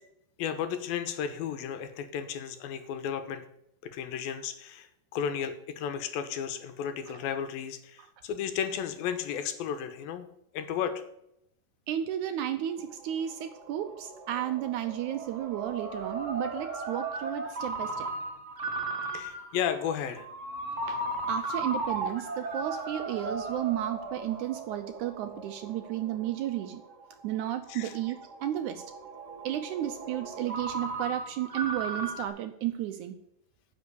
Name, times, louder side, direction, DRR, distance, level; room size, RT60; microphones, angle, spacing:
voice 1, 0.4-3.4 3.8-10.3 10.5-10.9 19.1-20.3 27.7-27.9, left 8 dB, 90° left, 9 dB, 2.9 m, -33 dB
voice 2, 11.9-18.1 20.8-26.8 27.2-28.8 29.4-33.2, right 12 dB, 75° right, 8 dB, 1.9 m, -33 dB
Ringtone, 12.5-32.3, right 2 dB, 55° right, 0.8 m, -37 dB
10.0 x 6.1 x 8.2 m, 0.76 s
omnidirectional pair, 4.1 m